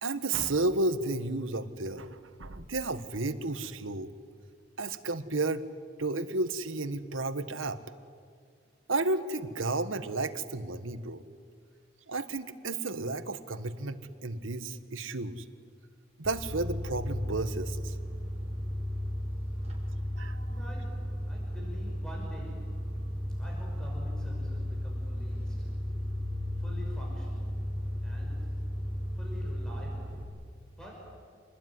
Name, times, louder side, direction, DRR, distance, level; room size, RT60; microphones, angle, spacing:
voice 1, 0.0-4.1 4.8-5.6 6.0-7.8 8.9-11.2 12.1-15.4 16.2-17.9 20.2-20.4, right 2 dB, 85° right, 11 dB, 1.4 m, -32 dB
sound 1, 16.2-30.2, equal, 30° right, 5.0 m, -34 dB
voice 2, 20.5-22.9 23.4-26.0 26.6-27.6 28.0-28.6 29.1-30.3 30.8-30.9, equal, 5° left, -2 dB, 5.8 m, -48 dB
28.0 x 20.5 x 9.7 m, 2.1 s
head